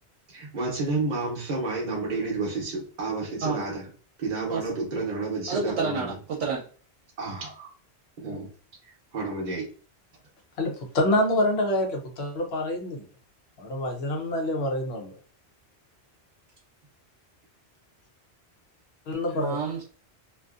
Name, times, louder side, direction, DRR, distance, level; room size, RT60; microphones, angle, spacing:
voice 1, 0.3-3.9 4.2-6.1 7.2-7.7 8.2-8.5 8.8-9.7, right 3 dB, 45° right, 0.8 m, -30 dB
voice 2, 5.5-6.6 19.3-19.8, right 4 dB, 75° right, 0.9 m, -29 dB
voice 3, 10.6-13.0 13.6-15.2 19.1-19.6, left 1 dB, 70° left, 1.0 m, -26 dB
2.5 x 2.5 x 2.4 m
omnidirectional pair, 1.1 m